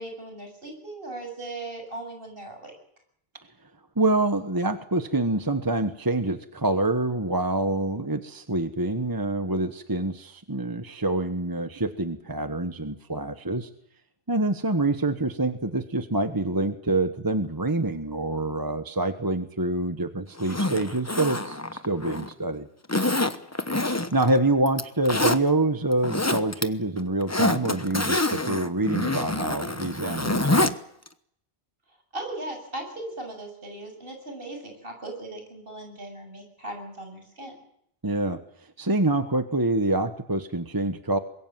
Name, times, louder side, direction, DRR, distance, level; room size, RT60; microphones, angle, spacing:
voice 1, 0.0-2.7 32.1-37.5, right 2 dB, 60° right, 3 dB, 7.7 m, -38 dB
voice 2, 4.0-13.7 14.3-22.7 24.1-30.7 38.0-38.4 38.8-41.2, right 2 dB, 20° right, 9 dB, 1.2 m, -26 dB
Zipper (clothing), 20.4-22.3 22.9-24.3 24.7-25.4 25.9-26.6 27.0-30.7 31.1-31.2, left 2 dB, 15° left, 1.0 m, -26 dB
25.0 x 22.0 x 7.5 m, 0.71 s
omnidirectional pair, 1.1 m